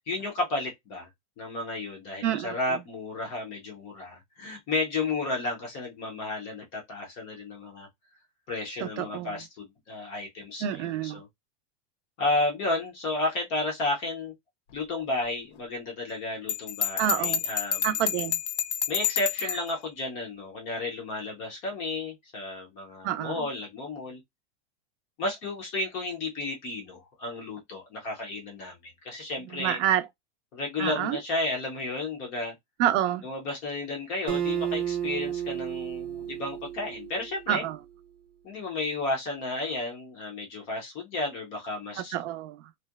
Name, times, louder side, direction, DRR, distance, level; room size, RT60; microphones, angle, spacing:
voice 1, 0.1-1.1 1.4-7.9 8.5-11.3 12.2-14.3 14.7-17.9 18.9-24.2 25.2-29.8 30.5-32.5 33.2-37.6 38.4-42.1, left 2 dB, 20° left, 0.3 m, -32 dB
voice 2, 2.2-2.8 8.8-9.4 10.6-11.2 17.0-17.4 17.8-18.4 23.0-23.5 29.5-30.0 30.8-31.2 32.8-33.3 37.5-37.8 42.0-42.6, right 11 dB, 80° right, 0.6 m, -28 dB
Bell, 16.5-19.7, left 9 dB, 80° left, 0.5 m, -29 dB
Acoustic guitar, 34.3-37.7, right 10 dB, 40° right, 0.6 m, -32 dB
2.7 x 2.2 x 2.2 m
supercardioid pair, 165°, 35 cm